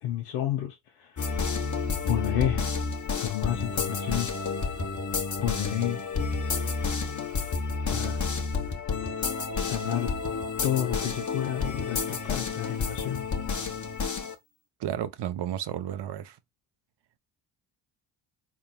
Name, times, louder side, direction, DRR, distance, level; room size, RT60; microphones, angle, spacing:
voice 1, 0.0-1.3 2.0-2.8 3.2-4.3 5.4-6.0 7.9-8.2 9.6-10.1 10.6-13.2, left 11 dB, 90° left, 0.9 m, -30 dB
sound 1, 1.2-14.3, left 4 dB, 35° left, 1.2 m, -30 dB
voice 2, 14.8-16.4, right 10 dB, 55° right, 0.8 m, -32 dB
3.9 x 3.6 x 2.3 m
supercardioid pair, 60°, 49 cm